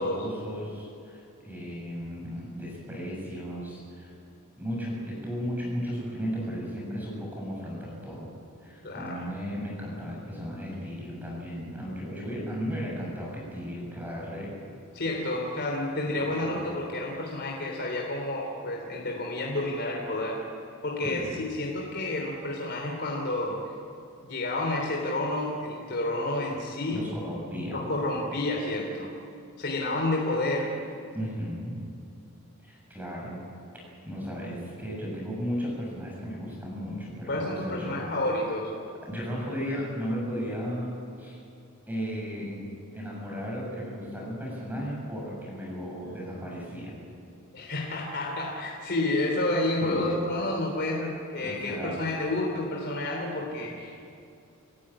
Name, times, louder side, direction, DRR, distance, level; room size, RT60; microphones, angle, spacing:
voice 1, 0.0-4.1 4.6-8.3 8.6-14.6 16.1-16.5 21.0-21.4 26.9-27.9 31.1-31.8 32.6-33.4 34.0-38.0 39.1-41.4 41.9-47.0 49.8-50.3 51.4-52.0 53.6-53.7, equal, 10° right, -4 dB, 7.4 m, -35 dB
voice 2, 8.8-9.2 14.9-20.4 20.8-23.6 24.2-27.0 27.7-29.1 29.6-30.7 37.3-38.7 47.5-54.1, left 2 dB, 50° left, -1 dB, 3.2 m, -30 dB
29.0 x 14.5 x 8.8 m, 2.6 s
head